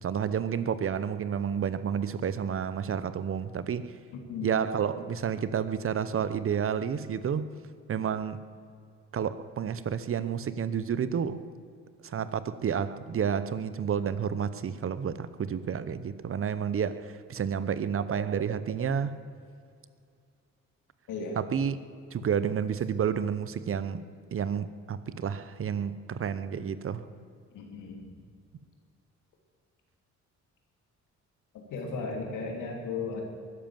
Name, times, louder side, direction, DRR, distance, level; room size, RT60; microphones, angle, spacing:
voice 1, 0.0-3.9 4.4-7.5 7.9-8.4 9.1-11.4 12.0-19.2 21.4-21.8 22.1-24.0 24.3-27.1, right 7 dB, 45° right, 14 dB, 0.8 m, -30 dB
voice 2, 27.5-28.0 31.7-33.2, left 4 dB, 85° left, 1 dB, 3.0 m, -35 dB
12.5 x 10.5 x 7.6 m, 2.3 s
cardioid pair, 90°, 30 cm